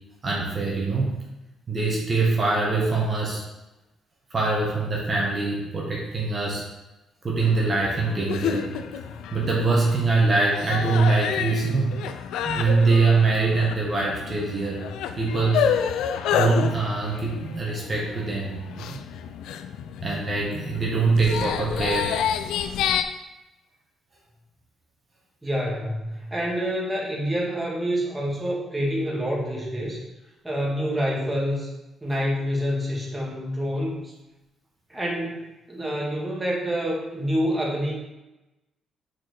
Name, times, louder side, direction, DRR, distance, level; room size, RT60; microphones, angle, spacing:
voice 1, 0.2-1.2 1.7-3.4 4.3-6.6 7.2-8.7 9.3-12.0 12.4-14.8 15.2-15.7 16.3-19.0 20.0-22.2, right 3 dB, 35° right, -3 dB, 1.7 m, -23 dB
sound 1, 7.4-23.0, left 8 dB, 90° left, 0.4 m, -29 dB
voice 2, 25.4-30.0 30.4-31.7 32.0-34.1 34.9-37.9, equal, 10° right, -4 dB, 1.9 m, -27 dB
5.9 x 4.7 x 4.7 m, 1.0 s
cardioid pair, 90°, 0 cm